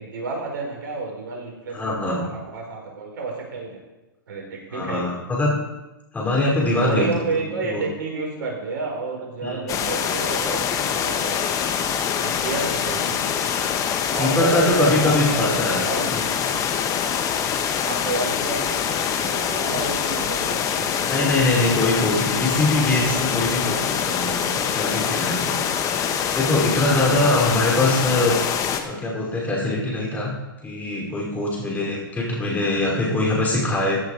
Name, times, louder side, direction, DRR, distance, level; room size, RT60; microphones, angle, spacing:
voice 1, 0.0-3.8 4.3-5.0 6.8-11.4 12.2-13.3 14.1-16.1 17.8-21.1 26.9-27.6 31.6-32.0, right 3 dB, 65° right, 0 dB, 5.3 m, -30 dB
voice 2, 1.7-2.2 4.7-5.5 6.1-7.1 7.3-7.8 9.4-9.8 14.2-15.9 16.1-16.2 21.0-25.7 26.3-28.4 28.8-30.3 30.6-34.0, left 2 dB, 15° left, -3 dB, 5.2 m, -23 dB
sound 1, 9.7-28.8, left 8 dB, 30° left, 1.5 m, -24 dB
15.5 x 8.3 x 5.0 m, 1.0 s
hypercardioid pair, 120°, 12 cm